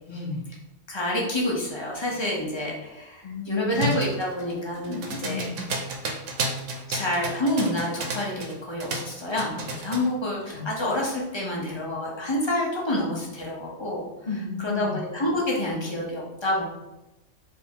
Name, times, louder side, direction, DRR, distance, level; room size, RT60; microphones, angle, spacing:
voice 1, 0.1-0.5 3.2-3.9 5.2-5.5 10.5-10.6 14.2-15.0, left 3 dB, 55° left, -1 dB, 1.2 m, -32 dB
voice 2, 0.9-5.4 6.9-14.1 14.6-16.6, left 1 dB, 25° left, -3 dB, 0.9 m, -28 dB
sound 1, 3.8-8.5 8.8-10.1, right 2 dB, 85° right, 1.0 m, -31 dB
3.5 x 2.7 x 4.4 m, 0.98 s
omnidirectional pair, 1.2 m